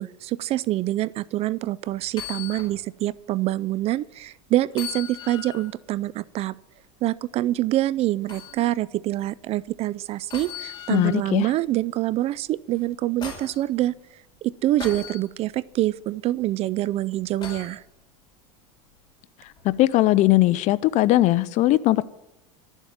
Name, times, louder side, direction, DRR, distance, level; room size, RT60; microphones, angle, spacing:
voice 1, 0.0-6.5 7.0-13.9 14.4-17.8, right 15 dB, 40° right, 0.4 m, -26 dB
Metallic ding, 2.1-2.7 3.2-3.3 4.7-5.7 8.3-8.6 10.3-11.2 12.7-13.6 14.8-15.2 17.4-17.8 19.6-19.7, left 8 dB, 25° left, 4.7 m, -37 dB
voice 2, 10.9-11.5 19.6-22.0, left 16 dB, 45° left, 0.6 m, -19 dB
12.0 x 7.3 x 9.3 m
supercardioid pair, 120°, 16 cm